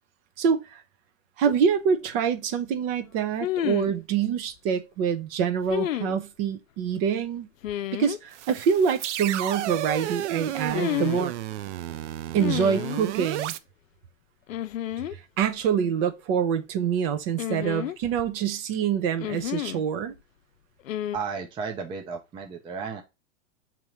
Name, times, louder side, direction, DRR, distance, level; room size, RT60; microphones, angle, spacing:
voice 1, 0.4-0.8 1.4-7.5 7.9-11.3 12.3-13.5 15.4-20.1, right 7 dB, 45° right, 0.9 m, -25 dB
sound 1, 1.5-1.6 3.4-4.0 5.7-6.2 7.6-8.2 10.7-11.3 12.4-13.0 14.5-15.1 15.4-15.5 17.4-18.3 19.2-19.8 20.9-21.2, left 12 dB, 85° left, 0.5 m, -30 dB
sound 2, 8.3-13.6, right 13 dB, 60° right, 0.6 m, -33 dB
voice 2, 21.1-23.0, right 5 dB, 15° right, 0.4 m, -33 dB
5.5 x 3.0 x 3.0 m
hypercardioid pair, 120°, 39 cm